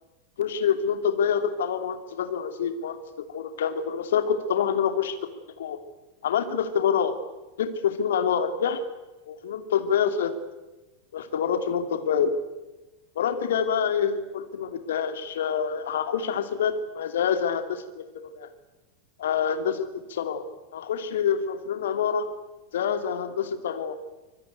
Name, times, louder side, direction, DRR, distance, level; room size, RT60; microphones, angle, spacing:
voice 1, 0.4-3.0 3.3-5.3 5.6-5.8 6.2-7.2 7.6-8.8 9.3-10.3 11.1-12.4 13.2-18.0 18.3-18.5 19.2-20.4 20.7-22.3 22.7-24.0, left 7 dB, 60° left, 9 dB, 2.7 m, -26 dB
25.0 x 20.5 x 9.3 m, 1.1 s
figure-of-eight pair, 90°, 0 cm